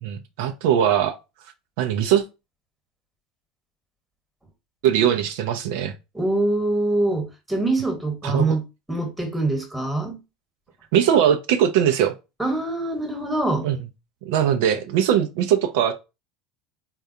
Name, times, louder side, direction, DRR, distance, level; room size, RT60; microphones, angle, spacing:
voice 1, 0.0-1.2 1.8-2.2 4.8-5.9 8.2-8.5 10.9-12.1 13.6-13.8 14.2-15.9, right 9 dB, 70° right, 0.4 m, -20 dB
voice 2, 6.1-8.6 8.9-10.2 12.4-13.7, right 2 dB, 5° right, 1.1 m, -24 dB
3.6 x 2.3 x 2.6 m
hypercardioid pair, 85°, 0 cm